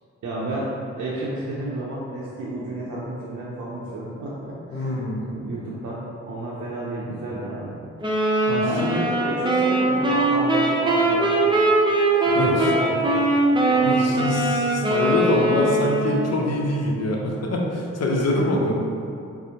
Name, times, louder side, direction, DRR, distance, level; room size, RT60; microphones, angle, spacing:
voice 1, 0.2-0.7 1.0-7.7 8.1-8.2 8.6-11.5 12.2-13.3 13.6-14.4 18.3-18.6, right 2 dB, 75° right, -7 dB, 0.5 m, -31 dB
voice 2, 4.7-5.2 8.5-9.0 12.4-12.7 13.8-18.8, left 1 dB, 60° left, -1 dB, 0.6 m, -24 dB
sound 1, 8.0-16.4, right 2 dB, 15° right, 0.5 m, -21 dB
4.2 x 2.0 x 2.7 m, 2.6 s
cardioid pair, 65°, 29 cm